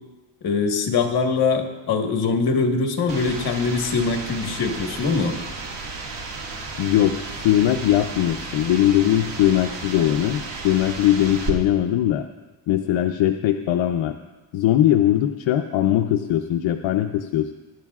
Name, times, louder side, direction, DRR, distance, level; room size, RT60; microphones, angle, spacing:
voice 1, 0.4-5.3, left 4 dB, 50° left, 4 dB, 1.5 m, -22 dB
sound 1, 3.1-11.5, right 3 dB, 65° right, 2.0 m, -33 dB
voice 2, 6.8-12.3 12.7-14.1 14.5-17.5, left 12 dB, 75° left, 5 dB, 0.7 m, -20 dB
21.5 x 11.5 x 2.4 m, 1.1 s
cardioid pair, 175°, 47 cm